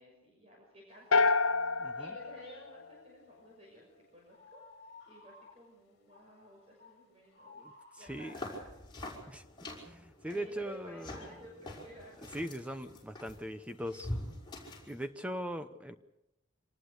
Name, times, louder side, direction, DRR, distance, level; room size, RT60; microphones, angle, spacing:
voice 1, 0.0-1.4 1.7-4.6 5.1-7.6 8.0-8.7 10.2-12.4, equal, 30° right, -2 dB, 6.2 m, -54 dB
sound 1, 1.1-3.4, left 4 dB, 75° left, 0.7 m, -29 dB
voice 2, 1.8-2.2 7.5-8.3 9.3-9.4 9.8-11.3 12.3-14.1 14.9-15.9, equal, 5° right, 9 dB, 0.9 m, -40 dB
sound 2, 2.2-2.8 4.3-5.6 6.1-6.3 6.7-8.4 11.0-11.4 13.6-14.2, left 3 dB, 50° left, 2.8 m, -57 dB
sound 3, 8.1-15.0, left 1 dB, 20° left, 6.0 m, -45 dB
26.0 x 19.5 x 6.7 m, 0.87 s
head